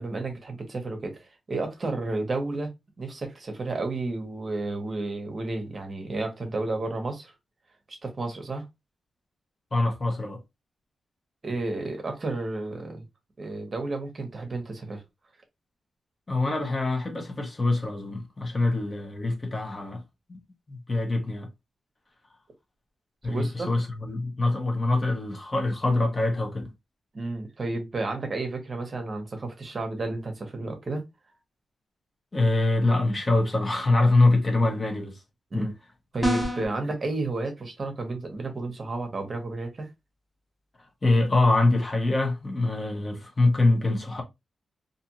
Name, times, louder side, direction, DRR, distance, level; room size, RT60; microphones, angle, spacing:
voice 1, 0.0-2.7 3.0-7.3 7.9-8.6 11.4-13.0 13.4-15.0 23.2-23.7 27.1-31.0 35.5-35.7 36.1-39.9, right 2 dB, 40° right, 0.9 m, -32 dB
voice 2, 9.7-10.4 16.3-20.0 20.3-20.4 20.7-21.5 23.2-26.7 32.3-35.2 35.5-35.7 41.0-44.2, left 2 dB, 30° left, 0.8 m, -24 dB
sound 1, 36.2-36.8, equal, 5° left, 1.0 m, -26 dB
2.6 x 2.5 x 2.8 m
cardioid pair, 95°, 0 cm